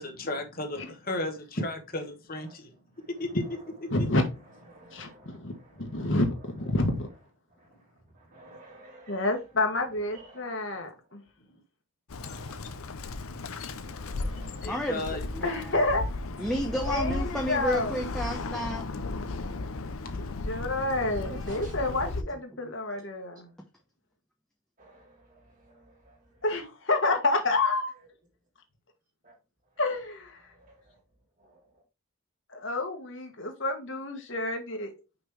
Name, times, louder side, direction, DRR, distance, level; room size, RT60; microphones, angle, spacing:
voice 1, 0.0-2.7 3.2-3.4 4.0-4.1 8.3-8.4 11.5-11.6 14.6-15.3 19.0-20.6, left 2 dB, 40° left, 1.1 m, -35 dB
voice 2, 3.9-4.2 4.9-7.1 9.1-11.2 15.4-16.0 16.8-18.0 20.2-23.5 26.4-27.9 29.8-30.4 32.5-34.9, left 2 dB, 60° left, 1.6 m, -29 dB
voice 3, 4.7-6.1 8.1-9.2 10.1-10.9 12.2-13.2 13.7-14.8 21.5-21.7 24.8-26.2 29.2-29.3 30.5-31.0 31.4-31.6, right 1 dB, 40° right, 2.5 m, -54 dB
Bird, 12.1-22.2, left 3 dB, 80° left, 0.7 m, -35 dB
voice 4, 14.7-15.0 15.3-15.7 16.4-18.8 21.2-21.9, equal, 5° left, 0.7 m, -32 dB
6.0 x 5.3 x 3.3 m
head